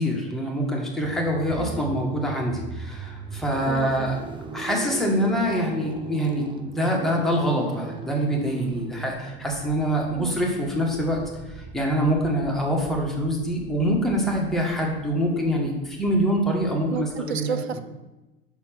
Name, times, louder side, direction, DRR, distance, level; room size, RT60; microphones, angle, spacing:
voice 1, 0.0-4.2 4.5-11.2 11.7-17.6, equal, ahead, -2 dB, 1.7 m, -25 dB
sound 1, 1.0-17.2, right 5 dB, 15° right, 0.5 m, -39 dB
voice 2, 3.6-4.2 10.1-10.4 16.8-17.8, right 8 dB, 85° right, 11 dB, 0.5 m, -32 dB
5.9 x 4.2 x 5.9 m, 1.1 s
figure-of-eight pair, 80°, 31 cm